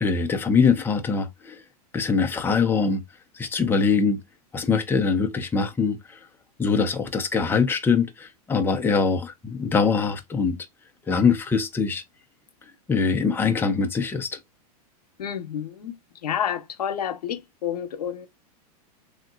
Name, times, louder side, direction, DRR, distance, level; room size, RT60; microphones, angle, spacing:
voice 1, 0.0-1.6 1.9-3.0 3.3-4.2 4.5-6.2 6.6-10.6 11.1-12.0 12.9-14.4, left 5 dB, 10° left, 0.6 m, -23 dB
voice 2, 15.2-15.9 16.2-18.3, left 9 dB, 90° left, 0.8 m, -29 dB
3.5 x 2.9 x 2.3 m
hypercardioid pair, 120°, 20 cm